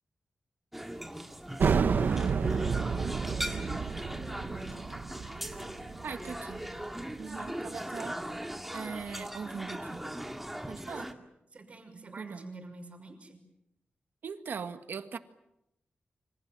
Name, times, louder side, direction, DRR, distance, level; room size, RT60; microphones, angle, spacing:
sound 1, 0.7-11.1, right 1 dB, 5° right, 2.0 m, -39 dB
sound 2, 1.6-6.9, right 6 dB, 65° right, 1.0 m, -30 dB
voice 1, 4.5-4.9 11.5-13.4, right 2 dB, 40° right, 5 dB, 5.9 m, -47 dB
voice 2, 6.0-6.6 7.2-8.2 8.7-10.0 10.7-11.1 12.2-12.5 14.2-15.2, right 6 dB, 85° right, 9 dB, 1.7 m, -40 dB
27.5 x 26.0 x 7.6 m, 0.85 s
wide cardioid pair, 155°, 3 cm